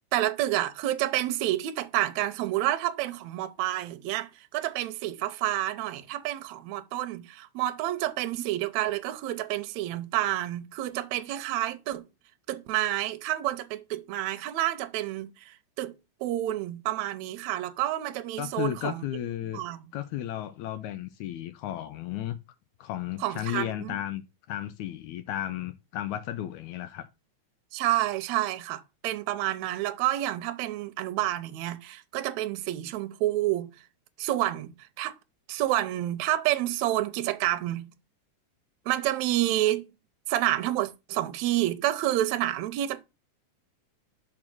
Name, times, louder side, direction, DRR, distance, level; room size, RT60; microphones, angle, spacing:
voice 1, 0.1-12.0 12.5-15.9 16.2-19.1 19.5-19.8 23.2-24.0 27.7-33.7 34.2-35.2 35.5-37.9 38.9-39.9 40.3-43.0, right 14 dB, 75° right, 1.8 m, -29 dB
voice 2, 18.4-19.6 19.9-22.4 22.8-27.1, left 12 dB, 80° left, 1.9 m, -34 dB
6.3 x 4.4 x 5.8 m
omnidirectional pair, 3.8 m